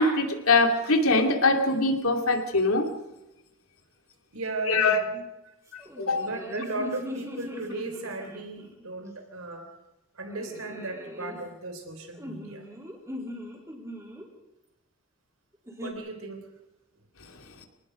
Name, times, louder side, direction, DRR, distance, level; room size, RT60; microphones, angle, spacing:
voice 1, 0.0-2.9 4.7-5.0 6.0-6.2, left 2 dB, 85° left, 4 dB, 2.8 m, -22 dB
voice 2, 4.3-5.6 6.2-9.7 10.1-12.7 15.8-16.5, right 2 dB, 85° right, 6 dB, 3.9 m, -36 dB
sound 1, 5.8-8.8 10.3-11.4 12.2-14.3 15.7-15.9, left 1 dB, 15° right, 4.2 m, -40 dB
26.5 x 19.0 x 5.3 m, 0.96 s
head